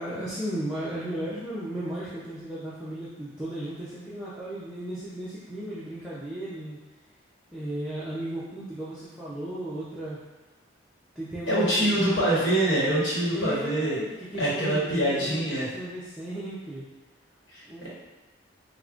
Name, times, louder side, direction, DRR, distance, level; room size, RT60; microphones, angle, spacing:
voice 1, 0.0-6.8 7.5-10.2 11.1-12.0 13.3-16.8 17.7-17.9, right 1 dB, 5° right, -11 dB, 0.5 m, -35 dB
voice 2, 11.5-13.9 14.4-15.7 17.5-17.9, right 1 dB, 70° left, -8 dB, 1.1 m, -25 dB
4.6 x 2.2 x 2.4 m, 1.2 s
head